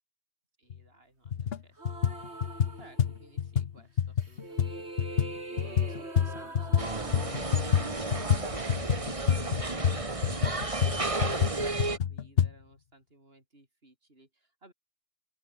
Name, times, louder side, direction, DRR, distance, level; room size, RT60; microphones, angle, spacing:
voice 1, 0.6-14.7, right 2 dB, 60° right, 5.9 m, -58 dB
sound 1, 0.7-0.8 1.3-1.6 1.8-6.9 7.1-12.5, left 8 dB, 65° left, 1.1 m, -28 dB
sound 2, 1.8-3.5 4.2-10.3, right 2 dB, 75° right, 4.3 m, -44 dB
sound 3, 6.8-12.0, right 2 dB, 30° right, 1.9 m, -33 dB
open air
omnidirectional pair, 1.1 m